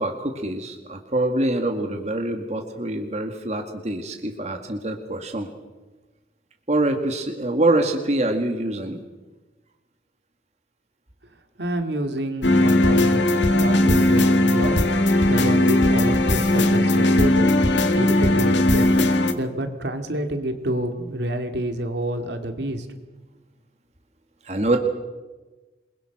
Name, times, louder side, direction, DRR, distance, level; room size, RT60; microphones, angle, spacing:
voice 1, 0.0-5.5 6.7-9.0 24.4-24.8, right 1 dB, 35° right, 4 dB, 1.9 m, -25 dB
voice 2, 11.6-13.2 13.6-14.8 15.2-18.9 19.3-22.9, right 1 dB, 70° right, 6 dB, 2.5 m, -28 dB
sound 1, 12.4-19.3, left 1 dB, 80° left, 1.9 m, -18 dB
28.0 x 22.0 x 6.1 m, 1.2 s
head